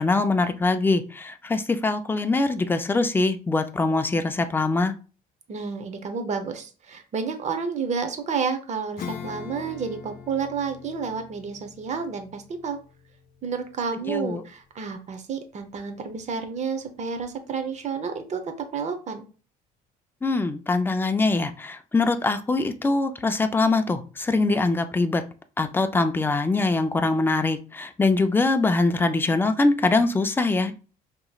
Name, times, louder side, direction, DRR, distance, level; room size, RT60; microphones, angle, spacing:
voice 1, 0.0-4.9 14.1-14.4 20.2-25.2 25.6-30.7, left 3 dB, 10° left, 8 dB, 0.5 m, -23 dB
voice 2, 5.5-12.8 13.4-19.3, right 5 dB, 45° right, 7 dB, 0.8 m, -30 dB
Acoustic guitar / Strum, 9.0-15.0, left 7 dB, 55° left, 0.7 m, -42 dB
5.2 x 2.9 x 2.4 m, 0.36 s
cardioid pair, 110°, 17 cm